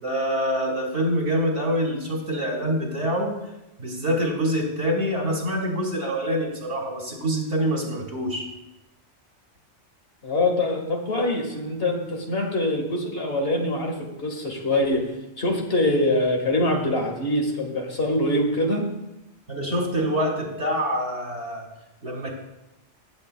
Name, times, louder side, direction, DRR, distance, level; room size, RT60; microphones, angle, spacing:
voice 1, 0.0-3.3 3.8-8.5 19.5-21.6 22.0-22.3, equal, 70° right, -1 dB, 2.7 m, -25 dB
voice 2, 10.2-15.0 15.4-18.8, left 1 dB, 55° left, 1 dB, 1.8 m, -24 dB
16.5 x 8.4 x 2.2 m, 0.94 s
omnidirectional pair, 1.2 m